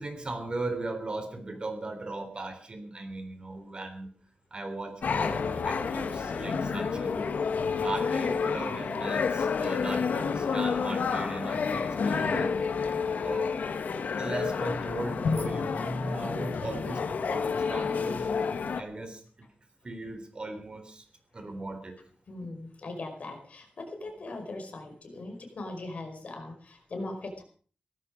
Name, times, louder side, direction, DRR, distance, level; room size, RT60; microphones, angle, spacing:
voice 1, 0.0-4.1 4.5-5.4 5.7-7.3 7.7-12.5 13.2-13.5 14.2-18.3 18.8-19.2 19.8-21.0 21.3-22.0, right 2 dB, 35° right, 7 dB, 3.5 m, -37 dB
sound 1, 5.0-18.8, left 5 dB, 90° left, 1.3 m, -29 dB
voice 2, 22.3-27.4, left 2 dB, 60° left, 4 dB, 5.0 m, -40 dB
17.5 x 14.5 x 5.1 m, 0.43 s
wide cardioid pair, 140°, 3 cm